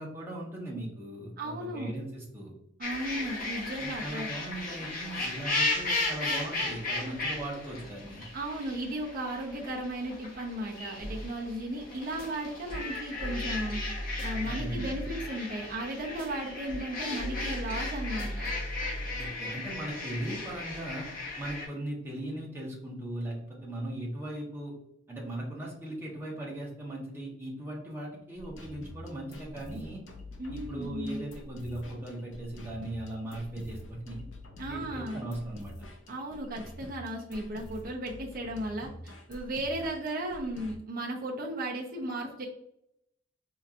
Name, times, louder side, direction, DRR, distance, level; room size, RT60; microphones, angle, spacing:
voice 1, 0.0-2.5 3.8-8.3 14.4-15.0 19.2-21.1 21.4-24.7 25.1-30.0 30.5-34.2 34.6-35.9, right 1 dB, 10° right, -4 dB, 1.1 m, -38 dB
voice 2, 1.4-1.9 2.8-4.3 8.3-13.8 14.2-18.5 30.4-31.2 34.6-35.2 36.1-42.5, right 1 dB, 50° right, -1 dB, 0.7 m, -35 dB
sound 1, 2.8-21.7, left 2 dB, 45° left, 1.3 m, -36 dB
sound 2, 11.0-11.3 12.0-12.3 12.7-15.5 16.0-16.3 16.7-19.5, equal, 5° left, 1.4 m, -37 dB
sound 3, 28.3-40.8, left 1 dB, 70° left, 0.7 m, -46 dB
4.3 x 3.0 x 2.5 m, 0.75 s
head